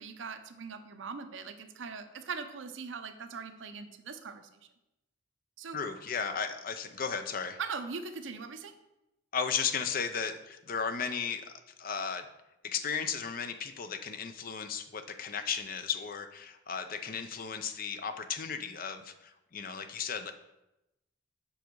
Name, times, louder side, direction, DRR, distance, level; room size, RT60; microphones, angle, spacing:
voice 1, 0.0-4.6 5.6-5.8 7.6-8.7, right 5 dB, 80° right, 9 dB, 0.6 m, -41 dB
voice 2, 5.7-7.6 9.3-11.5 11.8-12.3 12.6-20.3, left 6 dB, 50° left, 9 dB, 0.6 m, -35 dB
7.2 x 5.0 x 4.6 m, 0.91 s
head